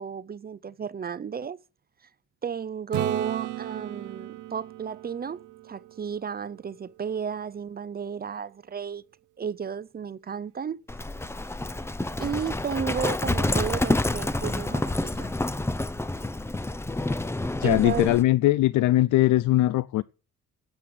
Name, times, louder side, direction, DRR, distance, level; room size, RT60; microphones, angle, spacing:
voice 1, 0.0-1.6 2.4-9.0 9.4-10.8 12.2-15.3 17.6-18.1, right 7 dB, 30° right, 0.5 m, -33 dB
Acoustic guitar / Strum, 2.9-6.7 11.5-11.6, right 16 dB, 80° right, 0.6 m, -36 dB
Livestock farm animals working animals, 10.9-18.2, left 2 dB, 10° left, 0.6 m, -28 dB
voice 2, 17.6-20.0, left 15 dB, 75° left, 0.5 m, -21 dB
9.6 x 8.7 x 7.7 m
cardioid pair, 90°, 30 cm